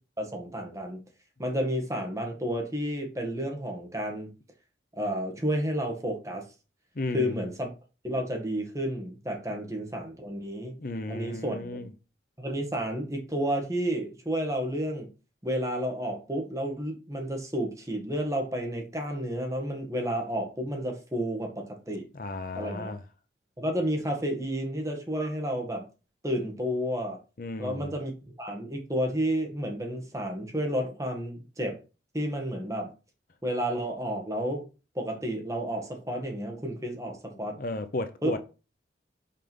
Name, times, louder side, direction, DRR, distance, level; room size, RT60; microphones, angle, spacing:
voice 1, 0.2-1.0 1.4-4.3 5.0-6.4 7.1-7.7 8.0-10.7 11.1-11.9 12.4-15.1 15.4-22.1 22.5-22.9 23.6-25.9 26.2-27.2 27.6-28.1 28.4-31.8 32.1-32.9 33.4-34.6 34.9-37.6 38.2-38.4, equal, 15° right, 1.7 m, -31 dB
voice 2, 7.0-7.5 10.8-11.9 22.1-23.0 27.4-27.9 37.6-38.4, left 2 dB, 50° left, 0.7 m, -34 dB
5.7 x 4.9 x 5.4 m
head